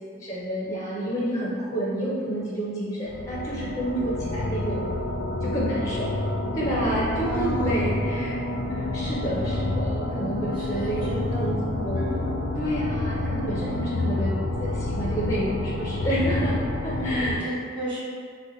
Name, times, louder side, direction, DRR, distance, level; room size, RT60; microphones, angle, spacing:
voice 1, 0.2-4.8 5.4-6.1 6.5-8.3 8.7-11.1 11.4-11.6 11.8-12.0 12.6-16.6 16.8-17.5, right 1 dB, 15° left, -7 dB, 0.4 m, -29 dB
sound 1, 3.1-17.4, left 2 dB, 70° left, 0.4 m, -28 dB
voice 2, 7.2-8.0 10.5-11.5 11.9-12.3 16.9-18.0, equal, 25° right, -10 dB, 1.0 m, -32 dB
2.7 x 2.1 x 3.7 m, 2.1 s
head